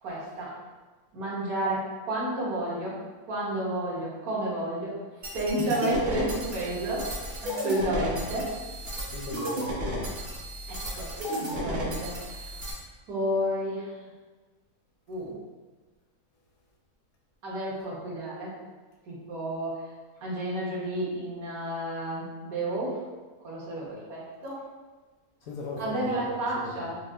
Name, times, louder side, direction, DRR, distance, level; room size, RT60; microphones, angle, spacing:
voice 1, 0.0-0.6 1.1-3.0 3.3-5.0 5.3-7.1 7.4-8.5 10.7-11.1 11.4-12.5 13.1-13.9 15.1-15.3 17.4-18.5 19.1-19.9 20.2-23.0 23.4-24.6 25.8-27.0, right 1 dB, 70° right, -6 dB, 1.5 m, -31 dB
sound 1, 5.2-12.7, equal, 50° right, 0.5 m, -33 dB
voice 2, 9.1-10.3 25.4-26.9, left 3 dB, 70° left, -1 dB, 0.9 m, -39 dB
4.8 x 2.5 x 2.3 m, 1.3 s
omnidirectional pair, 1.6 m